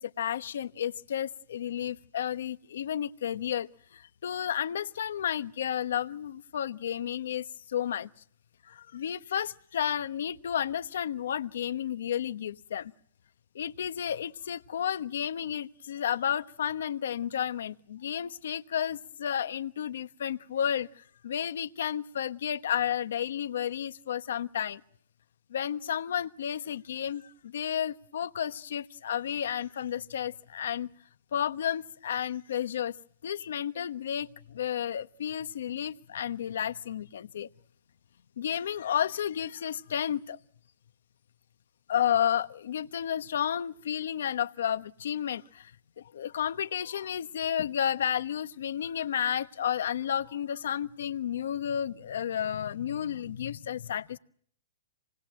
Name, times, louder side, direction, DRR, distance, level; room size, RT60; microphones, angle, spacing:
voice 1, 0.0-8.1 8.7-12.9 13.5-20.9 21.2-24.8 25.5-30.9 31.3-32.9 33.2-37.5 38.4-40.4 41.9-45.7 46.1-54.2, left 9 dB, 55° left, 1.1 m, -32 dB
28.0 x 20.5 x 7.7 m
hypercardioid pair, 180°, 0 cm